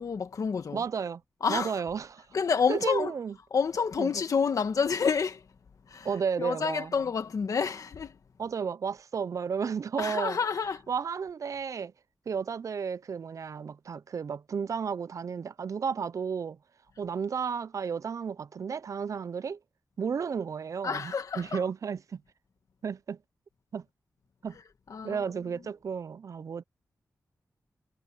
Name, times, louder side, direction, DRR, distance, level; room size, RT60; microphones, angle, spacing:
voice 1, 0.0-0.8 1.4-1.7 2.3-3.1 3.5-5.4 5.9-6.1 6.4-8.2 10.0-10.8 20.8-21.6 24.9-25.2, left 6 dB, 65° left, 2.1 m, -28 dB
voice 2, 0.7-1.2 1.5-2.2 2.7-3.3 4.0-4.1 6.0-6.9 8.4-10.4 10.9-11.9 12.3-16.6 17.0-19.6 20.0-22.2 22.8-23.2 23.7-23.8 24.4-24.6 25.0-26.6, right 6 dB, 60° right, 0.5 m, -33 dB
wide cardioid pair, 85°, 6 cm